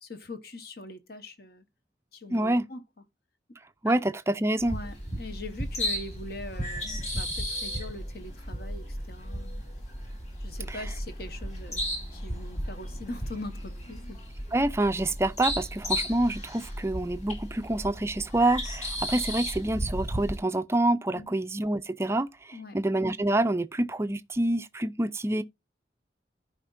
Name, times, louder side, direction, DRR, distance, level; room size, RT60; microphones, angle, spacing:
voice 1, 0.0-1.6 2.1-2.8 3.8-4.0 4.6-9.6 10.4-11.8 12.1-14.2 21.1-21.3 22.5-22.8, left 2 dB, 55° left, 1.1 m, -42 dB
voice 2, 2.3-2.6 3.8-4.8 10.7-10.9 14.5-25.4, right 1 dB, 15° right, 0.4 m, -27 dB
sound 1, 4.6-20.4, equal, 40° left, 2.6 m, -35 dB
14.5 x 5.1 x 2.5 m
head